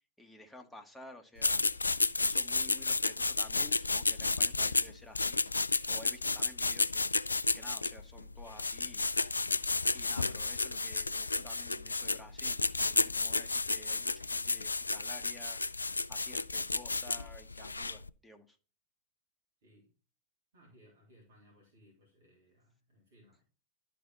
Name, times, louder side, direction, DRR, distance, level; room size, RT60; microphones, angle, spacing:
voice 1, 0.2-1.7 1.9-5.4 5.9-7.2 7.5-9.1 9.9-18.6, left 1 dB, 5° left, 3 dB, 1.4 m, -53 dB
sound 1, 1.4-18.1, left 3 dB, 80° left, 0.3 m, -32 dB
voice 2, 19.6-19.9 20.5-23.4, equal, 60° right, -1 dB, 3.0 m, -63 dB
11.5 x 4.4 x 5.4 m, 0.37 s
figure-of-eight pair, 90°, 0 cm